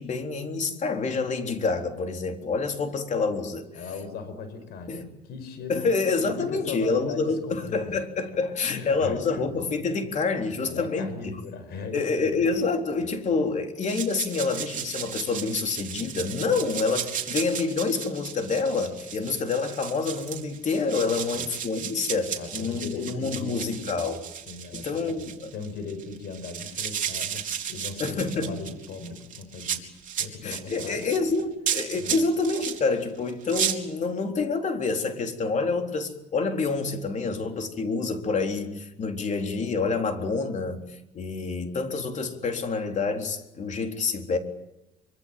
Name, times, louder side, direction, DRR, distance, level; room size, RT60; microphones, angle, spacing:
voice 1, 0.0-3.6 4.9-5.0 5.7-11.3 11.9-24.2 24.7-25.5 28.0-28.5 30.4-44.4, left 4 dB, 45° left, 4 dB, 3.8 m, -27 dB
voice 2, 3.7-8.0 8.6-9.4 9.8-10.3 10.6-12.5 13.4-13.5 19.2-19.4 21.1-21.5 22.4-23.8 24.5-25.2 25.5-27.4 27.7-29.9 30.2-31.1 31.9-32.1, left 4 dB, 70° left, 10 dB, 5.7 m, -39 dB
sound 1, 13.8-32.8 33.3-33.7, right 9 dB, 50° right, 3.7 m, -34 dB
25.0 x 25.0 x 7.6 m, 0.91 s
cardioid pair, 110°, 17 cm